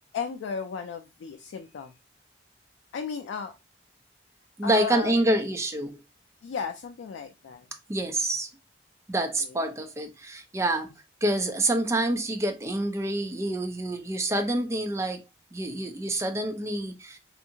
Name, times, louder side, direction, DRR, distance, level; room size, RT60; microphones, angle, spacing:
voice 1, 0.1-1.9 2.9-3.5 4.6-5.2 6.4-7.7 9.2-9.6, left 6 dB, 85° left, 0.3 m, -35 dB
voice 2, 4.6-6.0 7.9-8.5 9.1-10.9 11.2-15.2 15.5-17.2, right 1 dB, 15° right, 0.3 m, -27 dB
2.7 x 2.5 x 2.6 m
head